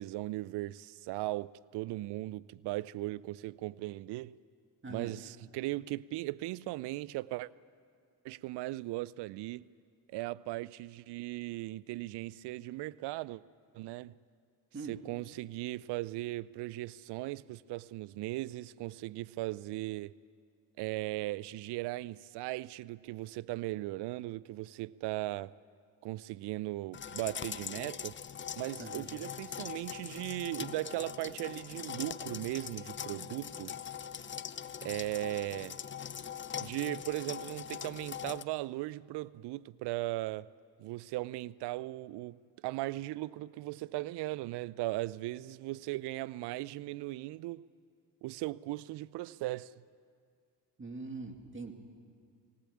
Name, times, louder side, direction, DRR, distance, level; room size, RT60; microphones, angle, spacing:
voice 1, 0.0-4.4 4.9-7.5 8.2-9.6 10.1-13.4 13.7-14.1 14.9-20.1 20.8-25.5 26.0-28.2 28.6-33.8 34.8-35.8 36.6-40.5 40.8-47.6 48.2-49.7, right 18 dB, 60° right, 0.5 m, -38 dB
voice 2, 4.8-5.1 14.7-15.0 28.8-29.1 50.8-51.7, right 3 dB, 25° right, 2.4 m, -42 dB
sound 1, 26.9-38.4, left 8 dB, 25° left, 0.6 m, -42 dB
19.0 x 18.5 x 8.6 m
supercardioid pair, 75°, 46 cm